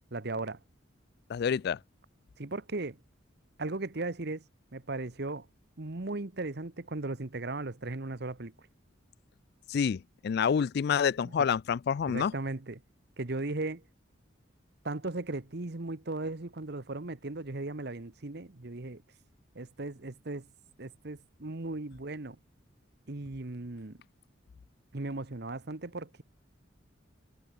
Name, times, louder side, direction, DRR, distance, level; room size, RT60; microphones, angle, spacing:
voice 1, 0.1-0.6 2.4-3.0 3.6-4.5 4.7-5.5 5.8-8.5 11.2-11.3 12.1-12.8 13.2-13.8 14.8-19.0 19.5-20.5 20.8-22.4 23.1-24.0 24.9-26.2, right 2 dB, 55° right, 1.2 m, -37 dB
voice 2, 1.3-1.8 9.7-12.3, left 7 dB, 55° left, 0.3 m, -28 dB
head